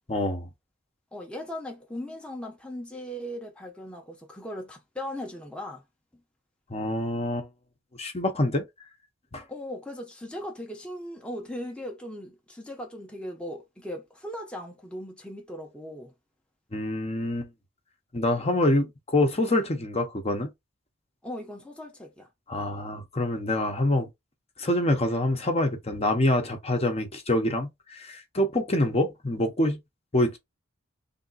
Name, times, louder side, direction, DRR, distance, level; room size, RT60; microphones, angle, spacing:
voice 1, 0.1-0.5 6.7-7.5 8.0-8.6 9.3-9.4 16.7-17.5 18.1-20.5 22.5-24.1 24.6-29.8 30.1-30.4, left 1 dB, 30° left, 0.9 m, -26 dB
voice 2, 1.1-5.8 9.5-16.1 21.2-22.3, left 1 dB, 5° left, 0.8 m, -38 dB
3.5 x 2.6 x 4.0 m
head